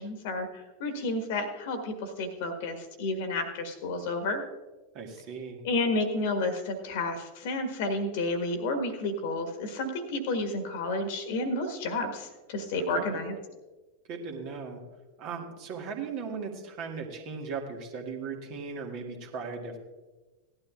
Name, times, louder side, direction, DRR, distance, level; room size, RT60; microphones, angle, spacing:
voice 1, 0.0-4.4 5.6-13.3, left 2 dB, 50° left, 6 dB, 1.6 m, -31 dB
voice 2, 4.9-5.6 12.8-13.2 14.1-14.8 15.2-19.8, right 5 dB, 40° right, 2 dB, 1.9 m, -38 dB
18.0 x 12.0 x 2.4 m, 1.2 s
figure-of-eight pair, 90°, 0 cm